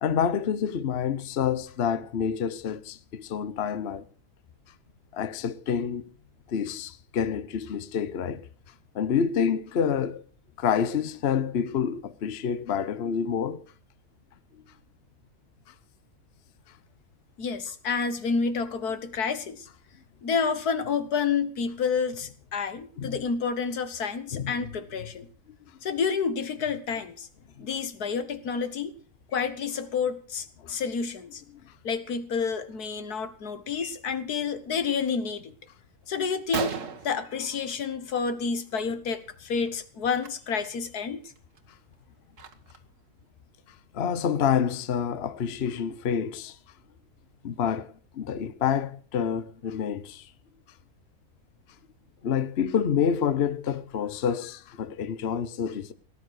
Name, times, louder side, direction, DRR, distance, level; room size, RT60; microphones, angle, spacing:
voice 1, 0.0-4.0 5.1-6.1 6.5-8.4 8.9-10.2 10.6-13.6 23.0-23.2 24.3-24.5 27.6-27.7 30.6-30.8 43.9-46.6 47.4-50.2 52.2-55.9, left 7 dB, 50° left, 1.0 m, -28 dB
voice 2, 17.4-19.7 20.2-25.3 25.8-27.3 27.6-29.0 29.3-31.4 31.8-35.6 36.1-36.8 37.0-41.3, left 5 dB, 85° left, 1.9 m, -29 dB
Gunshot gunfire, 35.8-35.9 36.3-36.4 36.5-38.1 38.5-38.8 39.1-39.3 40.1-40.3 40.8-40.9 41.4-42.9, right 5 dB, 55° right, 1.7 m, -36 dB
18.0 x 10.0 x 6.5 m
omnidirectional pair, 1.6 m